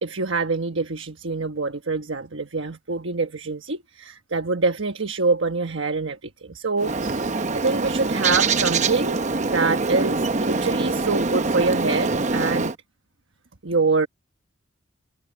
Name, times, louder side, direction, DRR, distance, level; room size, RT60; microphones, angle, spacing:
voice 1, 0.0-12.7 13.6-14.1, right 3 dB, 70° right, 1.3 m, -25 dB
Bird, 6.8-12.7, right 3 dB, 35° right, 0.8 m, -24 dB
head